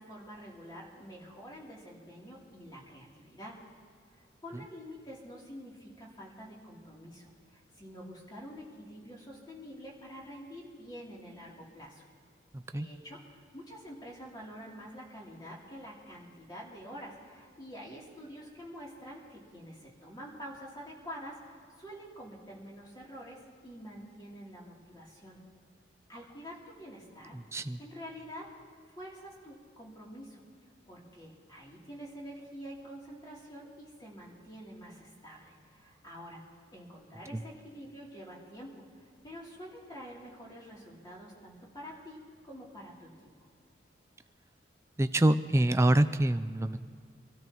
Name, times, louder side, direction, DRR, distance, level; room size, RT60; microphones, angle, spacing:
voice 1, 0.0-3.6 4.4-12.0 12.7-23.4 23.6-25.4 26.1-28.5 28.9-30.4 30.9-36.4 36.7-43.1, equal, 20° left, -4 dB, 3.2 m, -47 dB
voice 2, 45.0-46.8, right 1 dB, 15° right, 10 dB, 0.4 m, -25 dB
25.5 x 13.5 x 3.1 m, 2.2 s
head